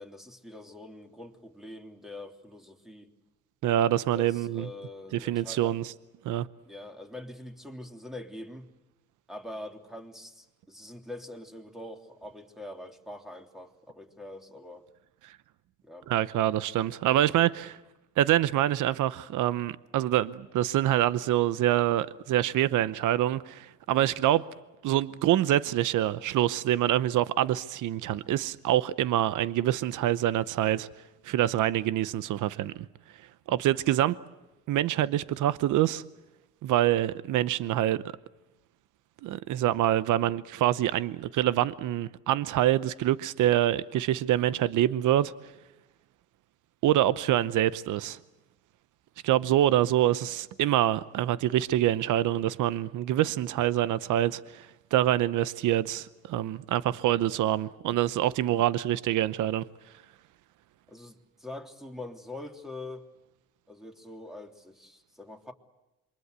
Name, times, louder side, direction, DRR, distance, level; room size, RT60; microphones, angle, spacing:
voice 1, 0.0-3.1 4.1-5.8 6.7-8.7 9.3-14.9 15.8-16.1 23.9-24.2 60.9-63.0 63.7-65.5, left 1 dB, ahead, 3.3 m, -44 dB
voice 2, 3.6-4.7 5.1-5.9 6.2-6.5 16.1-17.8 18.2-24.4 24.8-30.9 31.2-32.9 33.5-34.2 34.7-36.0 36.6-38.0 39.2-45.3 46.8-48.2 49.2-54.7 54.9-59.6, right 13 dB, 80° right, 0.8 m, -26 dB
27.5 x 24.0 x 8.1 m
cardioid pair, 90°, 30 cm